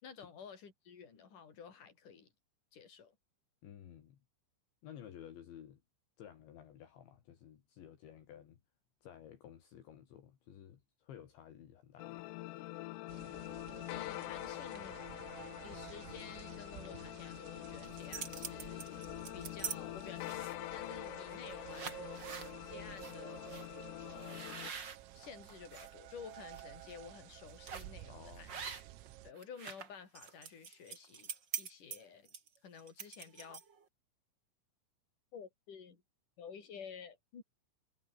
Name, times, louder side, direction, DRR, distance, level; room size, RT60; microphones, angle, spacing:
voice 1, 0.0-2.3 2.7-3.2 13.9-15.0 15.6-24.8 25.1-28.5 29.2-32.3 32.6-33.6 35.3-36.0 36.4-37.4, left 6 dB, 40° left, 5.9 m, -52 dB
voice 2, 3.6-4.2 4.8-5.8 6.2-8.6 9.0-12.2 28.1-28.7, left 10 dB, 65° left, 4.7 m, -54 dB
sound 1, 12.0-24.7, left 19 dB, 85° left, 3.5 m, -45 dB
sound 2, 13.1-29.3, right 15 dB, 90° right, 4.2 m, -52 dB
sound 3, 17.8-19.8 20.2-20.7 21.3-21.4 21.7-22.5 23.0-23.1 23.5-23.7 24.2-25.9 26.3-26.6 27.7-28.0 28.5-29.1 29.3-33.8, right 6 dB, 50° right, 1.2 m, -44 dB
omnidirectional pair, 5.8 m